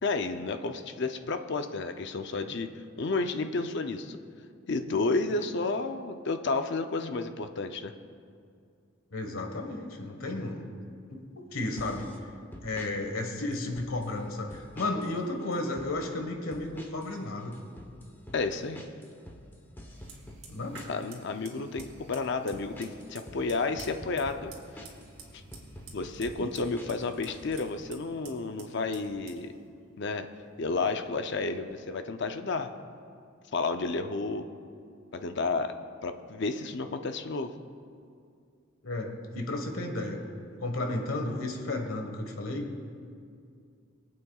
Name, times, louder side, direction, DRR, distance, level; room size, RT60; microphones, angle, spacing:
voice 1, 0.0-2.7 3.0-4.2 4.7-7.9 18.3-18.8 20.9-24.8 25.9-29.5 30.0-30.3 30.6-32.7 33.5-34.5 35.1-35.7 36.0-37.5, left 3 dB, 60° left, 7 dB, 0.6 m, -31 dB
voice 2, 9.1-10.7 11.1-11.2 11.5-12.1 12.6-17.6 20.5-20.8 26.4-26.5 38.8-40.2 40.6-42.7, left 2 dB, 85° left, 3 dB, 1.4 m, -33 dB
sound 1, 11.8-12.2 12.5-12.9 13.5-14.1 14.5-15.1 15.4-15.9 16.5-17.1 17.4-21.1 21.5-21.9 22.5-25.1 25.5-27.7, equal, 10° left, 1.0 m, -47 dB
Fire, 19.9-31.7, right 3 dB, 85° right, 2.3 m, -52 dB
24.0 x 8.5 x 2.4 m, 2.3 s
head